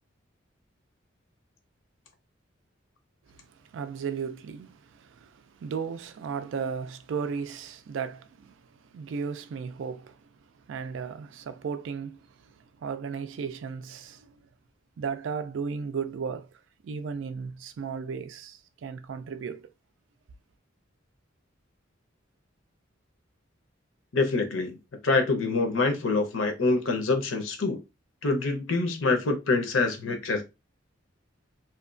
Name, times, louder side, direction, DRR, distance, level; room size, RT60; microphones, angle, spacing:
voice 1, 3.3-10.3 10.7-14.3 15.0-16.5 16.8-19.7, right 6 dB, 70° right, 0.3 m, -35 dB
voice 2, 24.1-24.8 25.0-27.8 28.2-30.4, left 3 dB, 90° left, 0.8 m, -25 dB
2.7 x 2.2 x 2.5 m
head